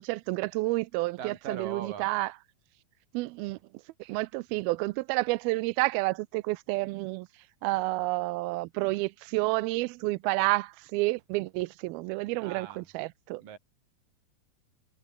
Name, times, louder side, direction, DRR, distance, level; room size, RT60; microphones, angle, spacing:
voice 1, 0.0-2.3 3.1-3.6 4.0-7.3 7.6-13.4, right 22 dB, 85° right, 2.4 m, -30 dB
voice 2, 1.2-2.1 12.4-12.9 13.4-13.6, right 8 dB, 60° right, 5.0 m, -40 dB
omnidirectional pair, 4.3 m